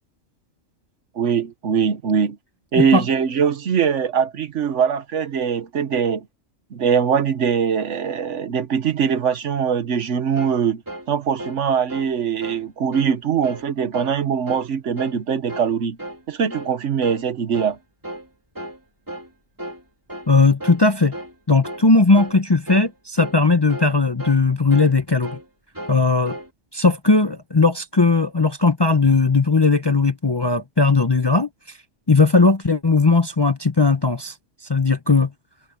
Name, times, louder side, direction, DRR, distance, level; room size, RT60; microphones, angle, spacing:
voice 1, 1.2-2.4 2.7-6.3 6.7-10.8 11.1-16.0 16.3-17.8, right 7 dB, 70° right, 1.3 m, -22 dB
sound 1, 10.4-10.6 10.9-11.1 11.4-11.6 11.9-12.1 12.4-12.6 12.9-13.1 13.4-13.7 13.9-14.2 14.5-14.7 15.0-15.2 15.5-15.7 16.0-16.2 16.5-16.7 17.0-17.3 17.5-17.8 18.0-18.3 18.6-18.8 19.1-19.3 19.6-19.8 20.1-20.3 20.6-20.8 21.1-21.4 21.6-21.9 22.2-22.4 22.7-22.9 23.2-23.4 23.7-23.9 24.2-24.4 24.7-25.0 25.2-25.5 25.8-26.5, right 1 dB, 15° right, 2.7 m, -35 dB
voice 2, 20.3-21.1 21.5-25.4 25.9-26.4 26.7-31.5 32.1-34.3 34.7-35.3, left 3 dB, 25° left, 0.6 m, -17 dB
omnidirectional pair, 1.3 m